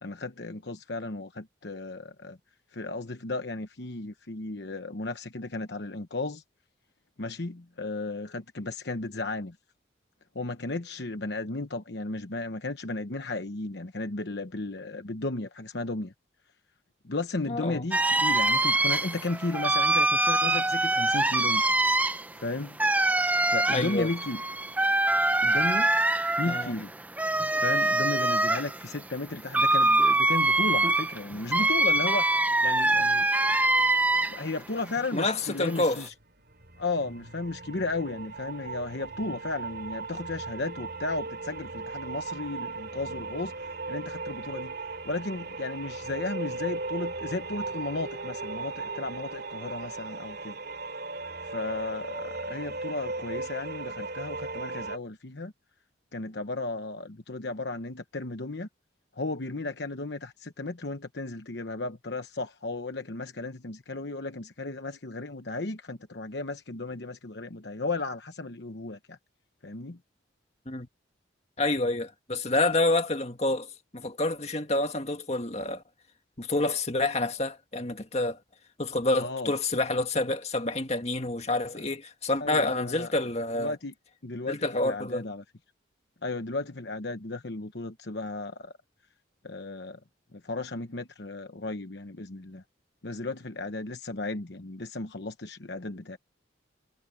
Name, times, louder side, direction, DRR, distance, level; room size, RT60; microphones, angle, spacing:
voice 1, 0.0-2.4 2.7-6.4 7.2-9.6 10.3-16.1 17.0-21.6 22.3-22.8 23.5-24.4 25.4-25.9 26.4-26.9 27.6-32.4 32.6-33.3 34.3-36.1 36.8-44.7 45.0-50.6 51.4-55.5 56.1-58.7 59.2-69.2 69.6-70.0 79.2-79.5 82.4-83.1 83.6-83.9 84.2-85.4 86.2-88.7 89.4-90.0 90.3-92.6 93.0-96.2, left 2 dB, 60° left, 1.1 m, -34 dB
voice 2, 17.5-17.9 23.7-24.1 26.4-26.7 35.1-36.0 70.7-70.9 71.6-73.7 73.9-75.8 76.4-78.4 78.8-83.7 84.5-85.2, left 2 dB, 35° left, 2.0 m, -28 dB
sound 1, 17.9-34.6 34.9-36.1, right 2 dB, 10° right, 0.6 m, -24 dB
sound 2, 36.1-55.0, right 3 dB, 55° right, 3.0 m, -37 dB
head